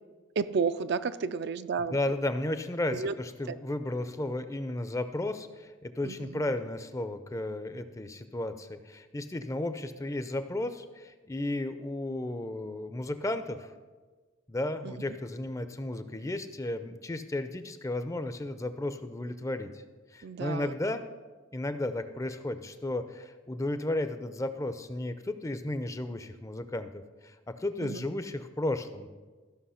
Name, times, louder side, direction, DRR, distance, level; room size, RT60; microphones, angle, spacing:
voice 1, 0.4-2.0 2.9-3.1 3.5-3.6 6.0-6.3 14.8-14.9 20.2-20.7 27.8-28.0, right 5 dB, 50° right, 12 dB, 0.4 m, -31 dB
voice 2, 1.9-13.7 14.5-19.8 20.1-21.0 21.5-26.9 27.2-29.1, left 1 dB, 15° left, 10 dB, 0.5 m, -34 dB
14.0 x 5.9 x 5.7 m, 1.3 s
head